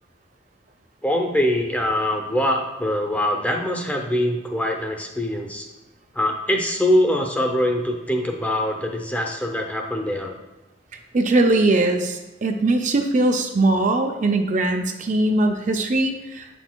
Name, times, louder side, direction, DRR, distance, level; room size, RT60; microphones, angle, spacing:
voice 1, 1.0-5.7 6.1-10.3, left 1 dB, 10° left, 2 dB, 0.6 m, -23 dB
voice 2, 11.1-16.5, right 2 dB, 40° right, 4 dB, 0.4 m, -20 dB
8.8 x 6.2 x 2.2 m, 1.0 s
head